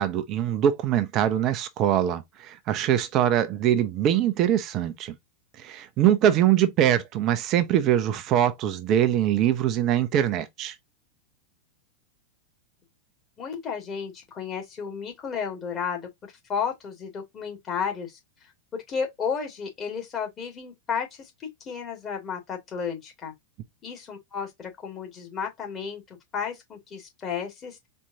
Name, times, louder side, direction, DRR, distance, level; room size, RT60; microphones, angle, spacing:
voice 1, 0.0-5.2 5.6-10.8, right 10 dB, 35° right, 0.7 m, -23 dB
voice 2, 13.4-16.1 16.5-18.2 18.9-23.3 23.8-27.8, left 6 dB, 25° left, 2.2 m, -33 dB
4.4 x 3.5 x 2.8 m
figure-of-eight pair, 90°, 0 cm